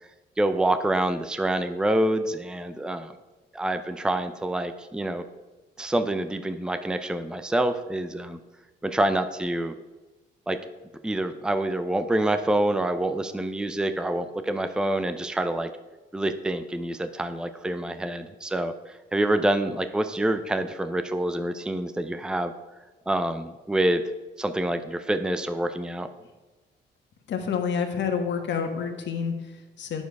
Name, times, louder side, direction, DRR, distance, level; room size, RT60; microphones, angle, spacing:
voice 1, 0.4-3.1 3.5-5.2 5.8-8.4 8.8-9.7 10.5-10.6 11.0-15.7 16.1-22.5 23.1-24.0 24.4-26.1, right 1 dB, 5° right, 9 dB, 0.6 m, -26 dB
voice 2, 27.3-30.0, left 6 dB, 65° left, 4 dB, 1.5 m, -28 dB
9.1 x 7.1 x 4.7 m, 1.2 s
cardioid pair, 90°, 20 cm